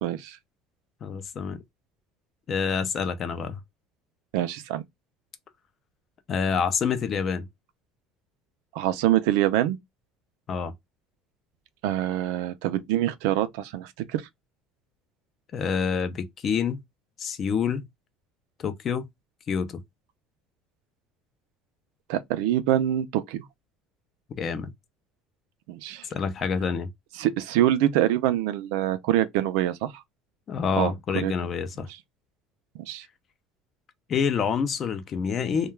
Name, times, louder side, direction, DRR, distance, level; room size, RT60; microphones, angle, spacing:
voice 1, 0.0-0.4 4.3-4.8 8.7-9.8 11.8-14.2 22.1-23.4 25.7-26.1 27.2-29.9 30.8-31.3 32.9-33.1, right 12 dB, 80° right, 0.4 m, -25 dB
voice 2, 1.0-1.6 2.5-3.6 6.3-7.5 10.5-10.7 15.5-16.8 17.2-17.8 18.6-19.0 19.5-19.8 24.4-24.7 26.1-26.9 30.5-31.9 34.1-35.7, left 6 dB, 30° left, 0.4 m, -27 dB
2.2 x 2.2 x 3.1 m
cardioid pair, 170°, 0 cm